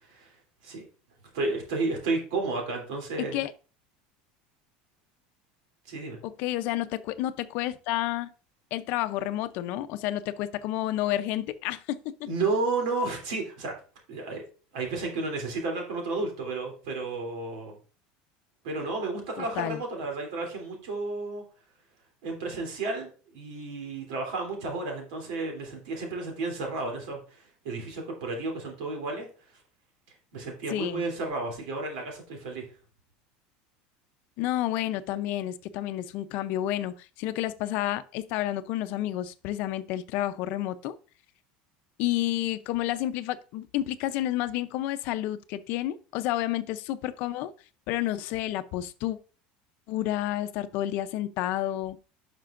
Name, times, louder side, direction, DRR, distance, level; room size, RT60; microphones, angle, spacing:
voice 1, 1.3-3.4 5.9-6.2 12.3-13.7 14.1-14.4 14.7-17.8 18.6-21.4 22.2-29.3 30.3-32.7, right 3 dB, 80° right, 3.1 m, -32 dB
voice 2, 3.2-3.5 6.2-8.3 8.7-12.1 19.4-19.8 30.7-31.0 34.4-41.0 42.0-47.5 47.9-49.2 49.9-52.0, left 13 dB, 50° left, 0.6 m, -30 dB
10.0 x 5.9 x 2.5 m
cardioid pair, 175°, 4 cm